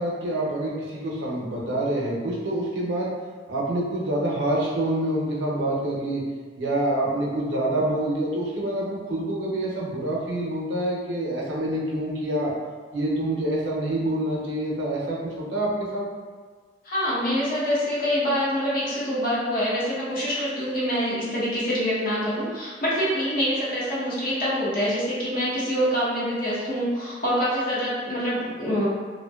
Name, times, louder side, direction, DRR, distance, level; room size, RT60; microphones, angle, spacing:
voice 1, 0.0-3.1 3.5-6.2 6.6-12.5 12.9-16.0, right 1 dB, 85° right, -4 dB, 0.6 m, -26 dB
voice 2, 16.8-28.9, equal, 55° left, -8 dB, 0.8 m, -25 dB
2.6 x 2.1 x 2.2 m, 1.5 s
head